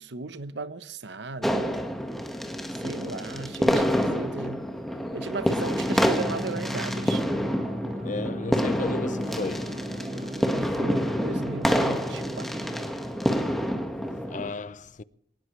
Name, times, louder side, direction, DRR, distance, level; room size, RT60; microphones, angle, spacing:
voice 1, 0.0-1.8 2.8-4.7 5.1-7.2 10.5-12.8, right 3 dB, 80° right, 1.0 m, -36 dB
sound 1, 1.4-14.5, equal, ahead, 1.6 m, -28 dB
sound 2, 5.8-12.9, equal, 60° right, 3.6 m, -36 dB
voice 2, 8.0-9.8 14.3-15.0, left 3 dB, 45° left, 0.6 m, -34 dB
22.5 x 19.0 x 3.3 m
head